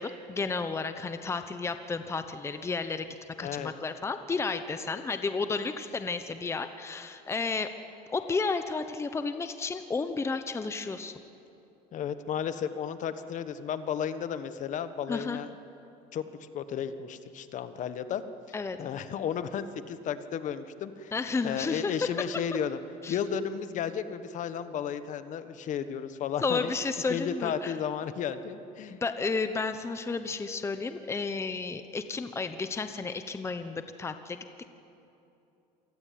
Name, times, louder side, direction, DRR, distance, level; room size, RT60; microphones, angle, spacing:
voice 1, 0.0-3.1 3.4-7.7 8.1-11.1 15.1-15.4 18.5-18.8 21.1-22.3 23.0-23.2 26.4-27.7 28.9-34.4, left 4 dB, 15° left, 9 dB, 1.0 m, -32 dB
voice 2, 3.4-3.7 11.9-15.5 16.1-18.2 18.8-21.1 21.4-22.8 23.1-26.7 27.1-29.0, left 8 dB, 50° left, 11 dB, 1.4 m, -33 dB
27.0 x 19.5 x 9.5 m, 2.8 s
cardioid pair, 140°, 16 cm